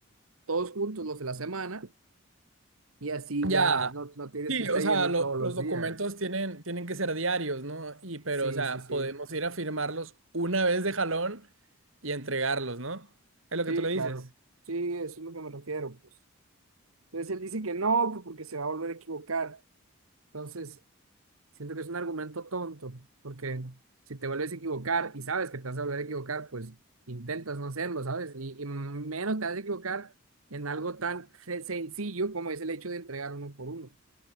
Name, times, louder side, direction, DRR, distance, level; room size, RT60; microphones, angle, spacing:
voice 1, 0.5-1.9 3.0-6.0 8.4-9.1 13.7-14.3 14.7-16.0 17.1-19.6 20.3-20.8 21.6-23.8 24.1-26.8 27.1-30.1 30.5-33.9, right 3 dB, 90° right, 1.4 m, -33 dB
voice 2, 3.4-3.9 4.5-11.5 12.0-13.1 13.5-14.2, right 3 dB, 70° right, 3.5 m, -30 dB
head